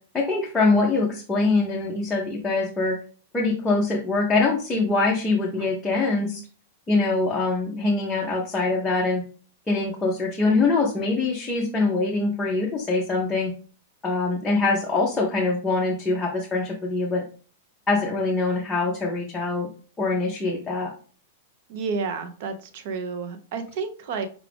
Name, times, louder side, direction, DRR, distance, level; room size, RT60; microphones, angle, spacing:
voice 1, 0.1-2.9 3.3-6.4 6.9-9.2 9.7-13.5 14.0-17.2 17.9-19.7 20.0-20.9, left 3 dB, 10° left, -3 dB, 0.5 m, -23 dB
voice 2, 21.7-24.3, right 5 dB, 45° right, 9 dB, 0.5 m, -30 dB
4.8 x 2.3 x 3.4 m, 0.40 s
supercardioid pair, 170°, 0 cm